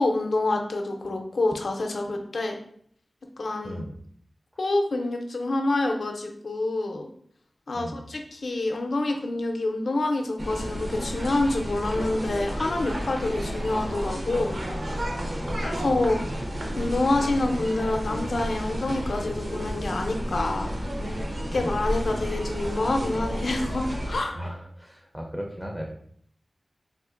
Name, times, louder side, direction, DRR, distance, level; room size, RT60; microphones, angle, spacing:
voice 1, 0.0-2.6 3.4-3.8 4.6-7.1 7.7-14.6 15.6-16.2 16.8-20.7 21.5-24.4, left 2 dB, 75° left, 3 dB, 0.5 m, -27 dB
voice 2, 3.6-4.0 7.7-8.0 15.4-16.3 21.5-21.8 24.3-25.9, equal, 5° right, 1 dB, 0.4 m, -37 dB
sound 1, 10.4-24.2, equal, 60° right, 0.7 m, -31 dB
3.6 x 2.5 x 2.4 m, 0.63 s
wide cardioid pair, 85°, 0 cm